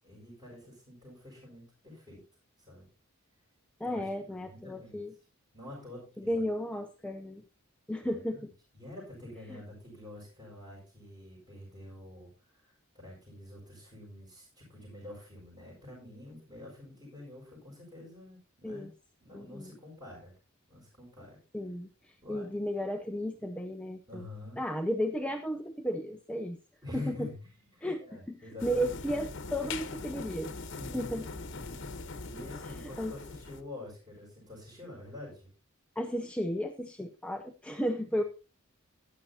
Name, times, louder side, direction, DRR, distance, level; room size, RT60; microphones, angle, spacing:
voice 1, 0.0-2.2 2.7-2.9 3.8-4.0 4.3-5.0 5.5-6.4 8.3-8.4 8.7-12.3 12.9-18.9 19.2-20.3 20.7-21.4 22.2-22.6 24.1-24.6 26.8-27.5 27.7-28.9 30.7-35.5, left 2 dB, 20° right, -8 dB, 5.9 m, -47 dB
voice 2, 3.8-5.1 6.2-7.4 7.9-8.5 9.5-9.6 18.6-18.9 19.3-19.7 21.5-24.3 24.6-26.6 26.9-27.3 27.8-30.5 30.9-31.3 32.6-33.1 36.0-38.2, equal, 5° left, 5 dB, 0.6 m, -34 dB
sound 1, 28.6-33.6, left 3 dB, 55° left, 1.1 m, -41 dB
15.0 x 10.5 x 2.8 m, 0.32 s
head